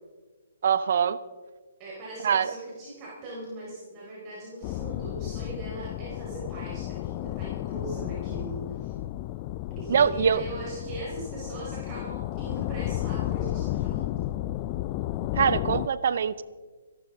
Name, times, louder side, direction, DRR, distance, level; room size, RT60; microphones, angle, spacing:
voice 1, 0.6-1.2 2.2-2.5 9.9-10.4 15.3-16.4, right 7 dB, 50° right, 16 dB, 0.8 m, -23 dB
voice 2, 1.8-8.9 9.7-14.3, right 2 dB, 25° right, -5 dB, 4.5 m, -40 dB
sound 1, 4.6-15.9, left 15 dB, 30° left, 0.4 m, -32 dB
27.0 x 12.5 x 3.8 m, 1.4 s
figure-of-eight pair, 130°, 0 cm